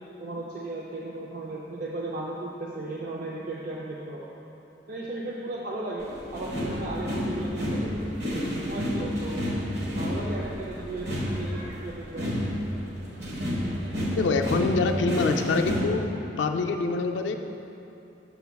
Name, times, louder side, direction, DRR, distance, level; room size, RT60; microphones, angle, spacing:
voice 1, 0.2-4.3 4.9-8.0 8.6-9.4 10.0-12.4 14.5-14.9, right 2 dB, 50° right, -3 dB, 0.4 m, -36 dB
sound 1, 6.0-15.8, equal, 65° right, 1.2 m, -30 dB
voice 2, 14.2-16.0 16.4-17.4, left 3 dB, 85° left, 5 dB, 0.3 m, -25 dB
6.9 x 6.8 x 2.3 m, 3.0 s
head